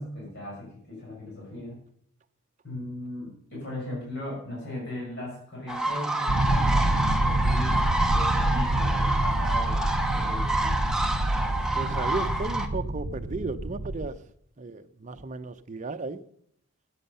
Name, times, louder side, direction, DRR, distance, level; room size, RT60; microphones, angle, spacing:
voice 1, 0.0-1.7 2.6-9.8 10.1-10.8, left 1 dB, 55° left, 6.2 m, -38 dB
sound 1, 5.7-12.7, right 1 dB, 5° right, 0.8 m, -28 dB
sound 2, 6.3-14.1, right 1 dB, 60° right, 0.9 m, -27 dB
voice 2, 11.7-14.2 14.6-16.2, right 3 dB, 35° right, 0.6 m, -34 dB
13.5 x 9.8 x 5.5 m
head